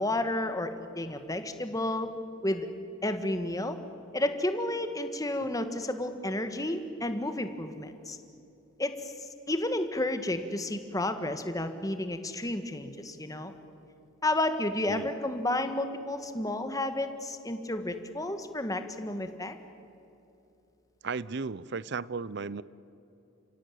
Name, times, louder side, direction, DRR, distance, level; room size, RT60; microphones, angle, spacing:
voice 1, 0.0-2.1 2.4-2.7 3.0-3.8 4.1-8.2 8.8-8.9 9.2-13.5 14.2-19.5, left 1 dB, 15° left, 8 dB, 1.6 m, -31 dB
voice 2, 21.0-22.6, right 4 dB, 55° right, 19 dB, 0.6 m, -35 dB
30.0 x 16.5 x 9.4 m, 2.9 s
head